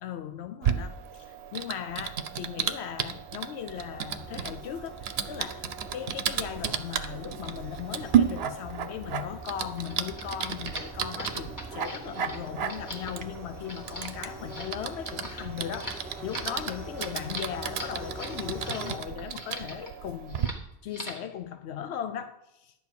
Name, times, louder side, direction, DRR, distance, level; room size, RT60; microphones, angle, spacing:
voice 1, 0.0-20.4 20.8-22.7, left 9 dB, 90° left, 0.9 m, -38 dB
Typing, 0.6-20.5, right 8 dB, 75° right, 0.9 m, -33 dB
sound 1, 3.6-19.0, right 1 dB, ahead, 1.6 m, -44 dB
sound 2, 9.8-18.9 19.2-19.9 20.3-20.6 20.9-21.3, equal, 20° left, 1.7 m, -42 dB
11.0 x 4.7 x 7.9 m
omnidirectional pair, 1.1 m